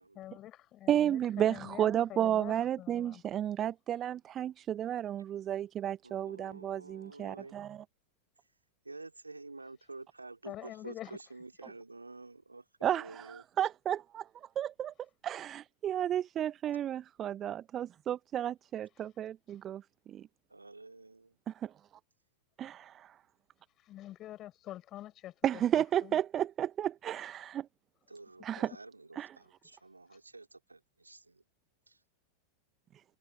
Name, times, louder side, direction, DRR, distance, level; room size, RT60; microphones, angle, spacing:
voice 1, 0.0-3.2 10.4-11.2 23.8-26.2, left 13 dB, 35° left, 4.9 m, -47 dB
voice 2, 0.9-7.8 12.8-14.3 14.6-14.9 15.2-19.8 20.1-20.3 21.5-21.7 22.6-23.2 25.4-27.7 28.4-28.7 29.2-29.3, right 10 dB, 30° right, 1.0 m, -32 dB
voice 3, 6.0-7.5 8.8-13.4 16.7-16.8 20.5-21.4 28.1-31.4 31.9-32.0, right 3 dB, 80° right, 3.4 m, -50 dB
figure-of-eight pair, 90°, 0 cm